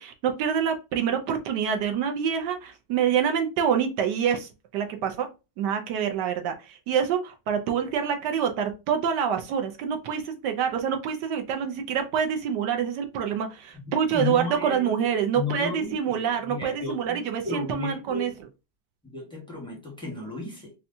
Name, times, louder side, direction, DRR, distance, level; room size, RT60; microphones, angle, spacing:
voice 1, 0.0-5.3 5.6-18.3, right 8 dB, 75° right, 1.0 m, -26 dB
voice 2, 13.8-15.1 15.3-18.4 19.0-20.7, left 4 dB, 5° left, 0.6 m, -34 dB
4.2 x 2.2 x 2.6 m
omnidirectional pair, 2.3 m